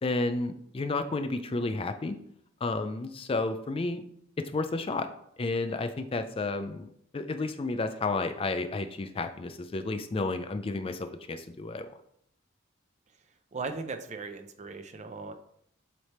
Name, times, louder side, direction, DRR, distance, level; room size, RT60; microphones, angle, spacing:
voice 1, 0.0-2.2 2.6-4.0 4.5-5.1 5.4-11.9, left 3 dB, 30° left, 9 dB, 0.4 m, -31 dB
voice 2, 13.5-15.3, right 4 dB, 35° right, 7 dB, 0.6 m, -38 dB
7.8 x 3.4 x 4.2 m, 0.71 s
head